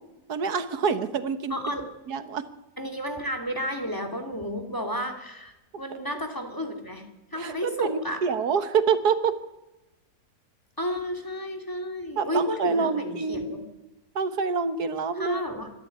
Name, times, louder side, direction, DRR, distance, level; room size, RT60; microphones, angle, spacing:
voice 1, 0.3-1.5 2.1-2.5 7.4-9.3 12.2-13.6 14.2-15.4, right 5 dB, 90° right, 11 dB, 1.8 m, -26 dB
voice 2, 1.5-1.8 2.8-8.3 10.8-13.6 15.1-15.7, equal, 15° left, 5 dB, 2.8 m, -32 dB
25.5 x 12.0 x 9.3 m, 1.0 s
omnidirectional pair, 1.6 m